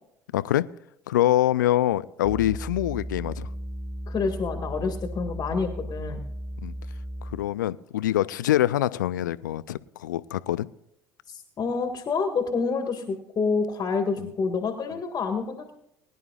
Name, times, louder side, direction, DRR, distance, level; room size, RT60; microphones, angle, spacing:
voice 1, 0.3-0.7 1.1-3.5 6.6-6.7 7.3-10.7, left 13 dB, 80° left, 17 dB, 0.5 m, -24 dB
sound 1, 2.2-7.5, equal, 10° right, 3.1 m, -35 dB
voice 2, 4.1-6.2 11.3-15.7, left 4 dB, 40° left, 5 dB, 1.8 m, -28 dB
23.0 x 11.0 x 2.4 m, 0.78 s
hypercardioid pair, 65°, 10 cm